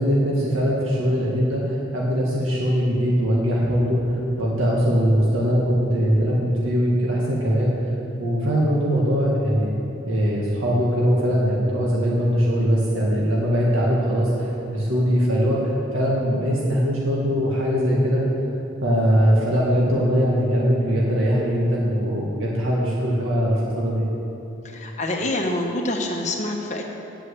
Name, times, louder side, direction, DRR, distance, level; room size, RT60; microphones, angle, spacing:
voice 1, 0.0-7.7 8.2-9.7 10.1-18.2 18.8-24.0, equal, 85° right, -4 dB, 1.8 m, -21 dB
voice 2, 24.6-26.8, left 1 dB, 35° left, 1 dB, 1.2 m, -26 dB
9.2 x 8.4 x 8.1 m, 3.0 s
head